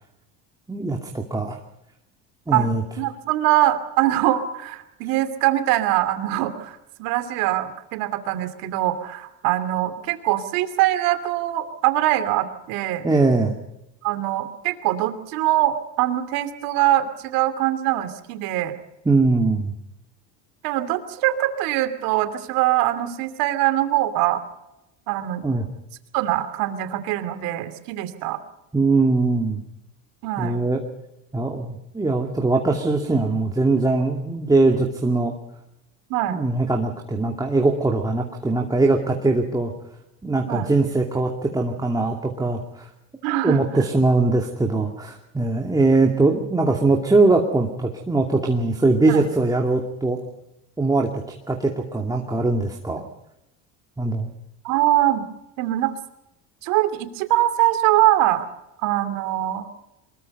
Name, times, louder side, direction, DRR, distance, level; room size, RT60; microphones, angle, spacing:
voice 1, 0.7-1.6 2.5-2.8 13.0-13.6 19.1-19.7 25.4-25.7 28.7-29.6 30.4-30.8 31.3-35.3 36.3-39.7 40.2-42.9 43.4-50.2 50.8-51.1 51.5-53.0 54.0-54.3, right 3 dB, 10° right, 1 dB, 2.5 m, -21 dB
voice 2, 3.0-13.1 14.0-18.7 20.6-24.4 25.1-25.4 26.1-28.4 30.2-30.6 36.1-36.4 40.5-40.7 43.2-43.6 49.1-49.3 54.6-55.2 55.6-55.9 56.6-58.5 58.8-59.7, right 14 dB, 70° right, 9 dB, 2.8 m, -23 dB
23.5 x 21.5 x 5.5 m, 0.88 s
supercardioid pair, 105°, 36 cm